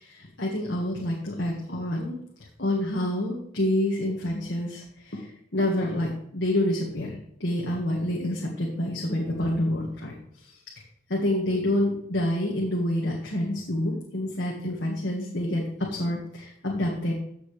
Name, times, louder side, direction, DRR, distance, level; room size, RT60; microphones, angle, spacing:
voice 1, 0.0-2.2 2.6-10.1 10.4-10.6 11.1-17.1, left 1 dB, 60° left, -2 dB, 1.8 m, -28 dB
14.5 x 6.8 x 3.4 m, 0.72 s
head